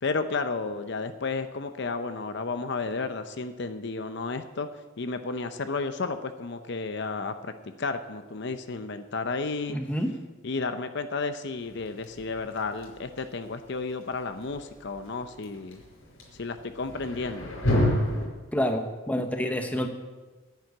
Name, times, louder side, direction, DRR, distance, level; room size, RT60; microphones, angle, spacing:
voice 1, 0.0-4.7 5.0-7.5 7.8-9.8 10.4-15.8 16.3-17.5, left 4 dB, 55° left, 9 dB, 0.7 m, -32 dB
voice 2, 9.7-10.1 18.5-19.9, equal, 5° left, 5 dB, 1.0 m, -28 dB
sound 1, 11.6-18.3, left 1 dB, 80° left, 5.5 m, -31 dB
10.5 x 7.7 x 9.6 m, 1.3 s
head